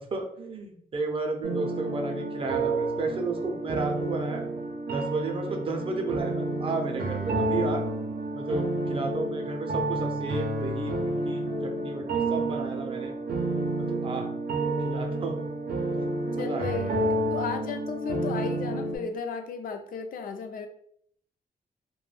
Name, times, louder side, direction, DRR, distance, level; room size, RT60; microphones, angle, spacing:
voice 1, 0.0-4.4 4.9-7.9 8.3-10.9 11.2-13.1 13.8-14.3 14.6-15.4 16.3-17.1, right 3 dB, 35° right, 3 dB, 0.5 m, -33 dB
sound 1, 1.4-19.0, right 2 dB, 85° right, 0.5 m, -30 dB
voice 2, 16.4-16.9 17.3-20.7, left 5 dB, 65° left, 7 dB, 0.4 m, -34 dB
2.2 x 2.1 x 3.1 m, 0.64 s
wide cardioid pair, 135°, 16 cm